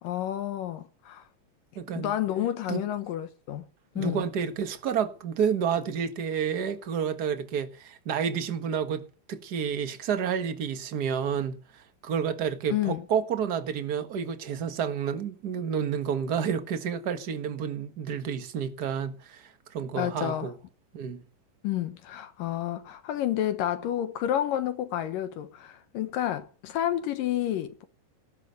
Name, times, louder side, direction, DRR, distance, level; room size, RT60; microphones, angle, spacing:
voice 1, 0.0-1.2 2.0-3.6 4.0-4.3 12.7-13.0 20.0-20.5 21.6-27.8, left 12 dB, 75° left, 2.7 m, -30 dB
voice 2, 1.7-2.2 2.7-2.8 3.9-9.0 9.3-20.5 20.9-21.2, right 7 dB, 50° right, 1.2 m, -30 dB
18.0 x 11.0 x 6.8 m
omnidirectional pair, 4.1 m